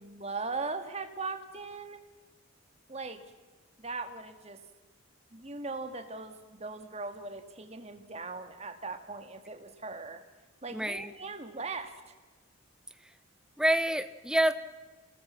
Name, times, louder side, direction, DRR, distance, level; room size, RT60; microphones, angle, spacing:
voice 1, 0.0-2.0 2.9-3.2 3.8-4.6 5.3-10.2 10.6-12.0, right 3 dB, 30° right, 7 dB, 1.9 m, -39 dB
voice 2, 10.7-11.1 13.0-13.1 13.6-14.5, right 1 dB, 5° right, 12 dB, 0.8 m, -27 dB
29.0 x 19.0 x 5.8 m, 1.3 s
head